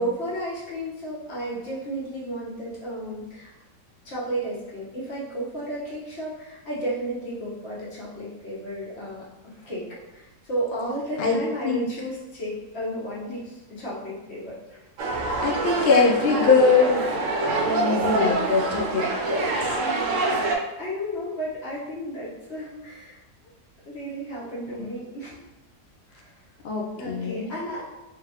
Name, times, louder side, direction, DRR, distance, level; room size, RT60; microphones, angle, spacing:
voice 1, 0.0-3.5 4.0-9.8 10.1-14.9 20.8-23.2 23.9-25.4 26.1-26.3 27.0-27.8, right 1 dB, 40° left, -7 dB, 1.3 m, -33 dB
sound 1, 15.0-20.6, right 3 dB, 60° right, 0.9 m, -25 dB
voice 2, 15.4-17.1 17.6-19.8 24.4-24.5 26.6-27.5, left 4 dB, 80° left, -2 dB, 0.5 m, -22 dB
3.6 x 3.4 x 2.9 m, 0.99 s
omnidirectional pair, 1.8 m